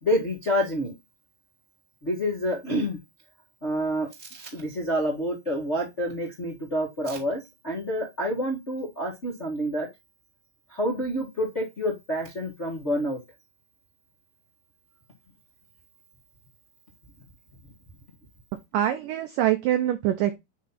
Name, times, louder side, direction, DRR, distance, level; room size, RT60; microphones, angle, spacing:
voice 1, 0.0-0.9 2.0-3.0 3.6-9.9 10.7-13.2, equal, 35° left, 1.2 m, -28 dB
voice 2, 18.7-20.4, right 12 dB, 85° right, 1.9 m, -24 dB
9.0 x 3.2 x 4.1 m
omnidirectional pair, 4.7 m